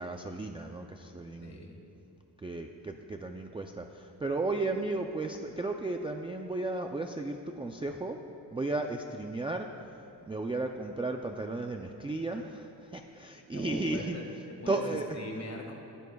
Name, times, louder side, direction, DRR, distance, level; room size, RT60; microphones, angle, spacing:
voice 1, 0.0-1.6 2.4-8.2 8.5-9.7 10.3-14.2 14.7-15.1, right 2 dB, 15° right, 3 dB, 0.4 m, -34 dB
voice 2, 1.4-1.9 13.5-15.7, left 2 dB, 40° left, 1 dB, 1.8 m, -42 dB
22.0 x 14.5 x 2.3 m, 2.7 s
wide cardioid pair, 160°, 41 cm